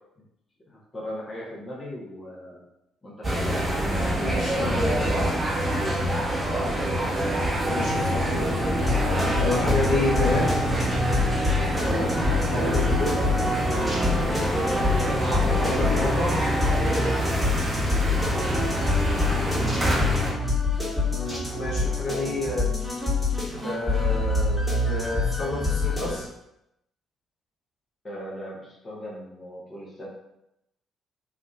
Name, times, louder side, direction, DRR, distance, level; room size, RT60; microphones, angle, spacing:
voice 1, 0.7-2.6 3.0-3.6 6.1-7.1 11.8-12.3 14.7-15.2 18.1-20.4 28.0-30.1, equal, 30° left, -5 dB, 1.1 m, -39 dB
sound 1, 3.2-20.3, equal, 25° right, 1.0 m, -25 dB
voice 2, 4.2-5.2 7.6-10.5 12.5-13.2 15.5-16.4 21.1-22.7 23.4-26.3, left 1 dB, 65° left, -8 dB, 1.2 m, -30 dB
sound 2, 8.7-26.2, left 3 dB, 5° left, 1.5 m, -26 dB
3.5 x 2.6 x 2.4 m, 0.85 s
hypercardioid pair, 45°, 0 cm